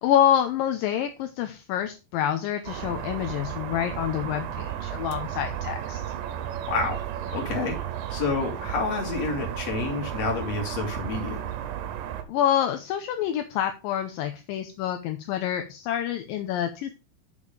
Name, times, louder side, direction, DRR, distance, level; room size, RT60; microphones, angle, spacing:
voice 1, 0.0-6.0 12.3-16.9, left 10 dB, 80° left, 6 dB, 2.3 m, -27 dB
sound 1, 2.7-12.2, right 10 dB, 75° right, 2.6 m, -33 dB
voice 2, 6.7-7.0 7.3-7.8 8.1-11.5, left 4 dB, 50° left, 1 dB, 3.2 m, -29 dB
7.1 x 6.5 x 4.9 m, 0.30 s
omnidirectional pair, 4.2 m